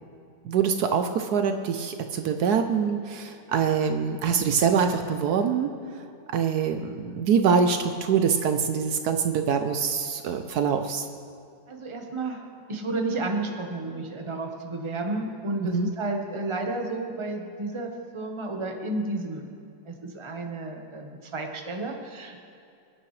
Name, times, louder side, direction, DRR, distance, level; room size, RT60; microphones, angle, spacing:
voice 1, 0.4-5.7 6.3-11.1 15.7-15.9, right 6 dB, 70° right, 7 dB, 1.2 m, -24 dB
voice 2, 11.7-19.5 19.9-22.5, right 2 dB, 20° right, 3 dB, 1.1 m, -32 dB
25.5 x 9.6 x 3.3 m, 2.5 s
omnidirectional pair, 1.8 m